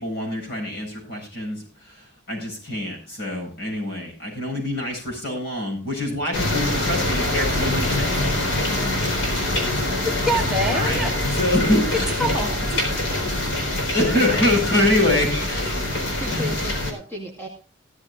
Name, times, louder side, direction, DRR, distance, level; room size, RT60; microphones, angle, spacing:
voice 1, 0.0-8.3 8.6-9.7 10.0-10.3 10.7-11.0 11.3-12.3 13.8-15.7 16.2-16.6, left 1 dB, 55° left, 0 dB, 7.6 m, -25 dB
sound 1, 6.3-16.9, left 1 dB, 85° left, 4.1 m, -24 dB
voice 2, 9.9-11.4 11.9-12.8, equal, 5° right, 0 dB, 1.3 m, -26 dB
voice 3, 15.9-17.5, left 1 dB, 10° left, 0 dB, 2.2 m, -35 dB
16.0 x 13.0 x 2.5 m, 0.35 s
head